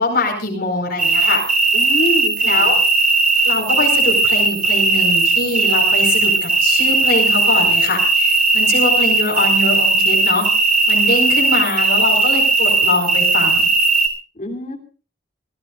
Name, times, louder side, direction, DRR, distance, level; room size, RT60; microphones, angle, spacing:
voice 1, 0.0-1.4 2.4-2.7 3.4-10.5 10.9-13.7, left 2 dB, 60° left, 0 dB, 4.8 m, -22 dB
sound 1, 1.0-14.1, right 3 dB, 50° right, 3.6 m, -16 dB
voice 2, 1.7-2.7 14.3-14.8, left 1 dB, 45° left, 2 dB, 3.1 m, -25 dB
27.5 x 14.5 x 2.5 m, 0.39 s
head